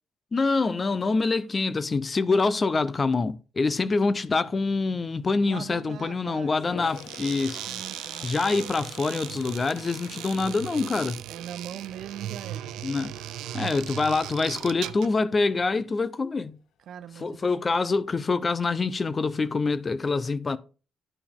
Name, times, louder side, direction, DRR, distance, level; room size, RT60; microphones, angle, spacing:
voice 1, 0.3-7.6 8.2-11.2 12.8-13.1 13.5-16.6 17.2-20.6, left 3 dB, 30° left, 0.7 m, -25 dB
voice 2, 5.4-6.9 7.7-8.3 11.3-12.8 16.9-17.6, right 9 dB, 70° right, 0.8 m, -41 dB
Toilet flush, 6.5-11.7 12.1-12.5 17.0-17.1 17.3-18.1, left 8 dB, 80° left, 0.7 m, -47 dB
sound 1, 6.9-15.2, right 12 dB, 90° right, 0.4 m, -38 dB
11.0 x 4.8 x 3.6 m
cardioid pair, 90°, 0 cm